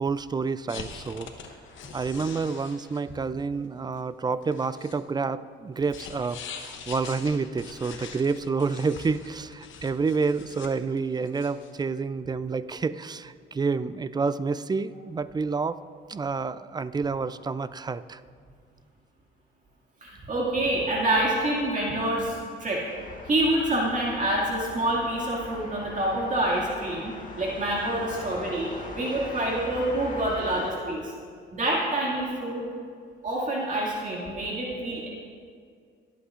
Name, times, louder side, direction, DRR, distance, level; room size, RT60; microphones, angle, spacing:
voice 1, 0.0-1.3 1.9-15.8 16.1-18.2, right 4 dB, 20° right, 15 dB, 0.3 m, -29 dB
sound 1, 0.7-3.1 3.6-3.7 4.0-4.1 4.4-4.9 5.9-11.9, left 6 dB, 75° left, 1.0 m, -43 dB
voice 2, 20.0-22.8 23.3-27.1 27.4-31.1 31.5-32.7 33.2-35.1, right 1 dB, 40° right, -4 dB, 2.1 m, -27 dB
sound 2, 22.8-30.7, left 3 dB, 40° left, 1.6 m, -41 dB
19.5 x 8.4 x 2.5 m, 2.1 s
cardioid pair, 90°, 20 cm